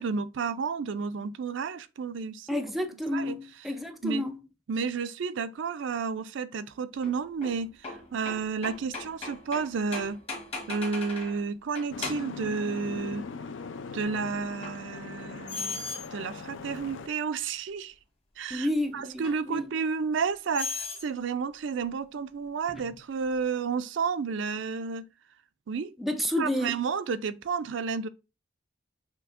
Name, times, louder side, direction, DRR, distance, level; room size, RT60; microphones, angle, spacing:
voice 1, 0.0-2.6 3.1-3.4 4.0-4.2 4.7-10.2 10.7-13.2 13.9-15.8 16.1-17.9 18.4-18.7 18.9-25.1 25.7-25.9 26.4-28.1, right 5 dB, 70° right, 0.4 m, -31 dB
voice 2, 2.5-4.4 18.5-19.7 22.7-22.8 26.0-26.8, left 1 dB, ahead, 0.3 m, -30 dB
sound 1, 7.0-11.4 11.7-12.4 14.6-14.8 15.5-16.1 16.8-16.9 19.2-19.4 20.5-21.1, left 3 dB, 30° left, 1.2 m, -37 dB
Boat Water vehicle, 11.9-17.1, left 4 dB, 75° left, 0.4 m, -40 dB
5.8 x 2.8 x 2.4 m
head